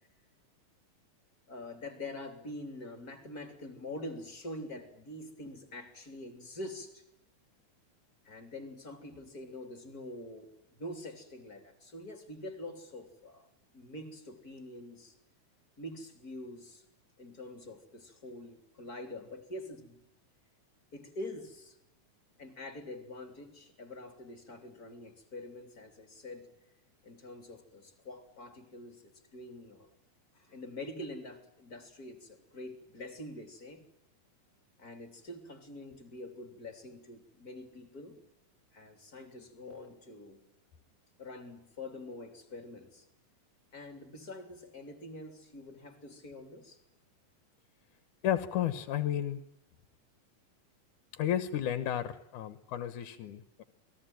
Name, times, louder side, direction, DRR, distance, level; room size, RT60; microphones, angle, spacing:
voice 1, 1.5-7.0 8.2-15.2 15.8-16.8 17.2-20.1 20.9-21.8 22.4-26.5 27.0-29.9 30.3-33.8 34.8-38.2 38.7-40.4 41.2-43.1 43.7-46.8, left 1 dB, 30° left, 7 dB, 3.5 m, -45 dB
voice 2, 48.2-49.4 51.1-53.6, left 11 dB, 70° left, 12 dB, 2.5 m, -32 dB
28.5 x 20.5 x 9.2 m, 0.77 s
omnidirectional pair, 3.7 m